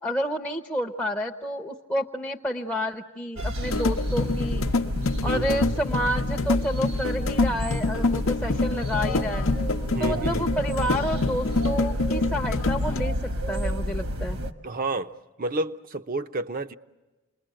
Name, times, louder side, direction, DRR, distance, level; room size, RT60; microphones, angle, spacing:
voice 1, 0.0-4.7 5.2-9.5 10.0-14.4, equal, 5° left, 0.8 m, -30 dB
sound 1, 3.4-14.5, equal, 65° right, 1.4 m, -30 dB
sound 2, 3.6-13.0, left 3 dB, 60° left, 0.8 m, -27 dB
voice 2, 5.2-5.7 9.9-10.5 14.6-16.7, right 2 dB, 40° right, 0.8 m, -31 dB
28.5 x 21.5 x 7.7 m
head